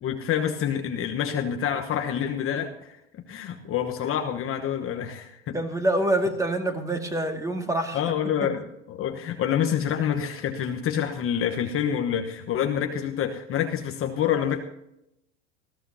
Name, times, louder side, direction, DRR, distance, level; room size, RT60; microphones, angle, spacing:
voice 1, 0.0-3.0 3.3-5.6 7.9-14.6, left 9 dB, 35° left, 4 dB, 1.2 m, -27 dB
voice 2, 5.5-8.0, right 1 dB, 10° right, 4 dB, 2.1 m, -26 dB
20.0 x 14.5 x 2.8 m, 0.83 s
hypercardioid pair, 105°, 39 cm